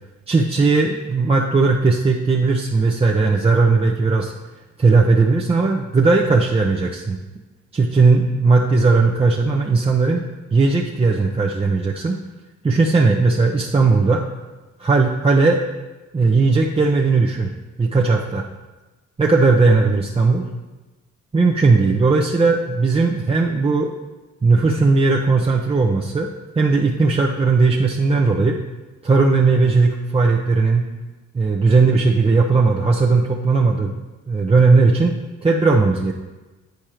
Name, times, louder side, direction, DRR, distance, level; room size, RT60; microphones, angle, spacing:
voice 1, 0.3-4.3 4.8-7.2 7.7-10.2 10.5-12.2 12.6-14.2 14.8-15.6 16.1-17.5 17.8-18.5 19.2-20.5 21.3-23.9 24.4-26.3 26.6-28.6 29.0-30.9 31.3-33.9 34.3-35.1 35.4-36.1, right 3 dB, 20° right, -1 dB, 0.7 m, -17 dB
9.2 x 4.3 x 4.9 m, 1.1 s
cardioid pair, 90°, 30 cm